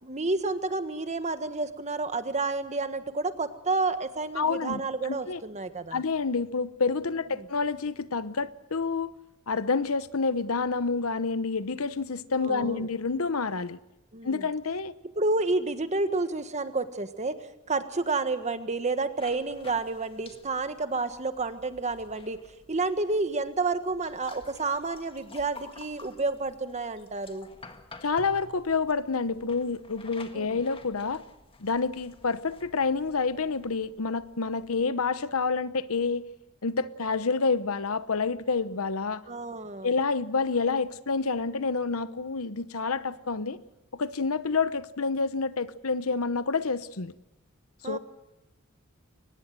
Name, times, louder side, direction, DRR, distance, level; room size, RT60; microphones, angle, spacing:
voice 1, 0.0-6.0 7.4-7.5 12.4-12.9 14.1-14.5 15.0-22.4 22.7-27.5 30.3-30.6 39.3-39.9 47.8-48.0, right 3 dB, 35° right, 1.5 m, -30 dB
voice 2, 4.4-5.4 5.9-9.1 9.5-13.8 14.2-14.9 28.0-31.2 31.6-36.3 36.6-39.2 39.8-43.6 43.9-47.1 47.8-48.0, left 4 dB, 80° left, 1.0 m, -28 dB
sound 1, 19.2-34.9, left 3 dB, 25° left, 1.8 m, -52 dB
24.0 x 19.5 x 7.7 m
head